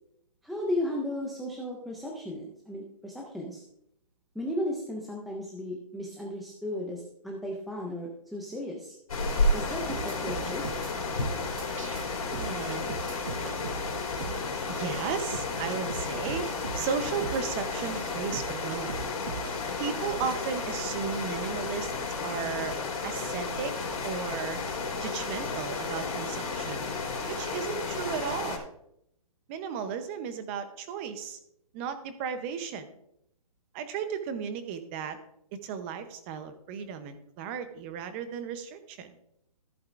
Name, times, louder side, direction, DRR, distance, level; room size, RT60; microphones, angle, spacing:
voice 1, 0.4-3.6 4.3-8.9 9.5-10.8, left 1 dB, ahead, -2 dB, 0.4 m, -35 dB
sound 1, 9.1-28.6, left 3 dB, 75° left, 3.0 m, -32 dB
sound 2, 9.2-28.1, left 1 dB, 25° left, 2.4 m, -52 dB
sound 3, 9.7-10.9 11.2-12.0 12.3-13.8 14.2-14.4 14.9-15.0 15.3-16.8 17.2-17.4 17.9-18.0 18.3-19.5, right 7 dB, 60° right, 0.9 m, -39 dB
voice 2, 12.4-12.8 14.7-16.4 16.7-19.0 19.8-21.9 22.2-22.7 23.0-23.7 24.0-24.6 25.0-26.9 27.3-28.7 29.5-31.4 31.7-32.9 33.7-35.2 35.5-39.1, right 7 dB, 20° right, 10 dB, 0.7 m, -35 dB
14.5 x 8.0 x 2.5 m, 0.76 s
hypercardioid pair, 165°, 19 cm